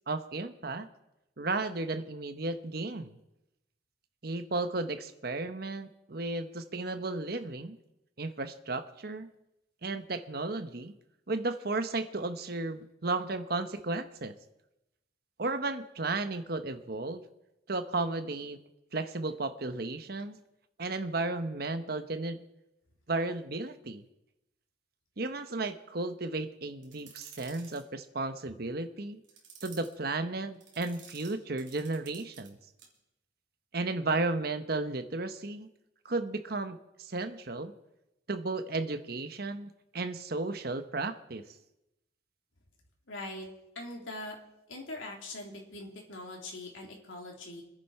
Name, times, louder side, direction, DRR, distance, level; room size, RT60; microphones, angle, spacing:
voice 1, 0.1-0.9 1.4-3.2 4.2-7.8 8.2-9.3 9.8-10.9 11.3-14.3 15.4-17.2 17.7-18.6 18.9-20.4 20.8-22.4 23.1-24.0 25.2-29.2 29.6-32.6 33.7-35.7 36.0-37.7 38.3-41.4, right 2 dB, 50° right, 9 dB, 1.0 m, -34 dB
sound 1, 26.8-27.8 29.2-29.9 30.6-32.5 32.8-33.0, right 6 dB, 75° right, 3.0 m, -52 dB
voice 2, 43.1-43.5 43.7-44.4 44.7-47.6, left 2 dB, 80° left, 0 dB, 3.5 m, -42 dB
24.5 x 10.5 x 4.4 m, 0.90 s
head